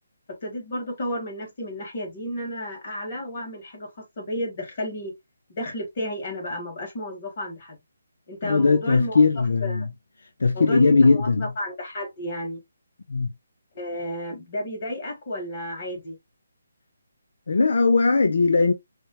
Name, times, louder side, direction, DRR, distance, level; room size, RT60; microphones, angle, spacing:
voice 1, 0.4-5.1 5.6-7.8 8.3-9.2 9.6-9.9 10.5-12.6 13.7-16.2, left 1 dB, 40° left, 1.6 m, -32 dB
voice 2, 8.4-9.9 10.4-11.5 13.1-13.3 17.5-18.7, left 4 dB, 70° left, 0.5 m, -19 dB
4.3 x 2.1 x 2.9 m
hypercardioid pair, 165°, 0 cm